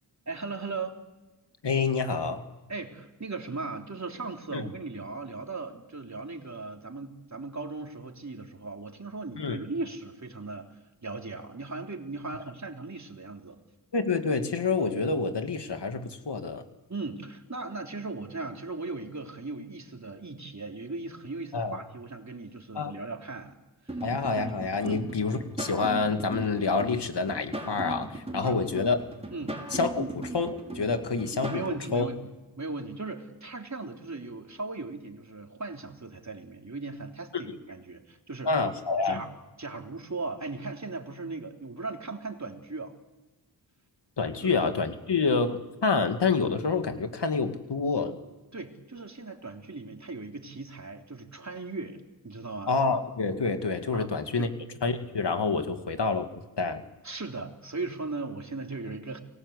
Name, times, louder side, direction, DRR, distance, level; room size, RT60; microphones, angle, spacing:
voice 1, 0.3-1.0 2.7-10.7 11.0-13.6 16.9-23.5 23.9-24.0 24.8-25.0 28.4-28.6 29.3-29.6 30.0-30.1 31.5-32.2 32.6-38.5 39.0-39.3 39.6-43.0 44.4-44.5 48.5-52.0 52.2-52.8 53.9-54.1 54.4-54.5 57.0-59.2, right 3 dB, 40° right, 3 dB, 3.7 m, -38 dB
voice 2, 1.6-2.4 4.5-4.6 9.4-9.6 13.9-16.6 21.5-21.8 22.7-22.9 24.0-29.0 29.7-30.1 30.3-32.1 37.3-37.4 38.5-39.2 44.2-48.2 52.7-54.5 54.8-56.3 56.6-56.8, left 4 dB, 65° left, 7 dB, 2.3 m, -27 dB
sound 1, 23.9-31.7, right 1 dB, 15° right, 5.6 m, -38 dB
29.5 x 19.0 x 8.3 m, 1.1 s
cardioid pair, 50°, 44 cm